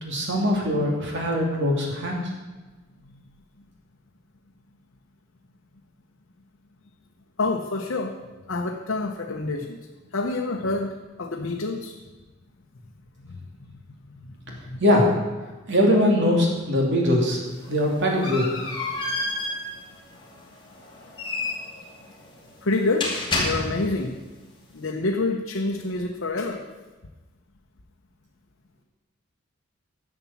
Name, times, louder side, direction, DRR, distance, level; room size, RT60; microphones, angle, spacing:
voice 1, 0.0-2.2 14.8-15.1 15.7-17.4 17.7-18.5, left 1 dB, 60° right, 0 dB, 2.7 m, -21 dB
voice 2, 7.4-8.1 8.5-9.9 10.1-10.9 11.2-12.0 13.3-14.8 22.6-24.2 24.7-26.6, left 3 dB, 65° left, 1 dB, 0.9 m, -28 dB
sound 1, 17.4-24.1, left 2 dB, 25° left, 2.5 m, -31 dB
11.0 x 7.1 x 7.2 m, 1.2 s
head